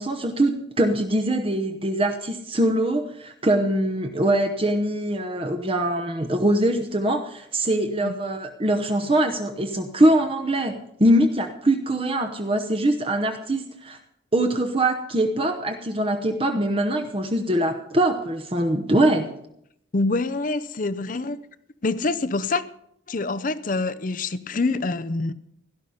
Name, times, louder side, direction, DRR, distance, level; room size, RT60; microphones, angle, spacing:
voice 1, 0.0-10.7 11.0-14.0 14.3-19.3, right 1 dB, 30° right, 0.9 m, -23 dB
voice 2, 19.9-21.4 21.8-22.6 23.1-25.3, left 3 dB, 40° left, 0.6 m, -25 dB
17.0 x 11.5 x 5.6 m
head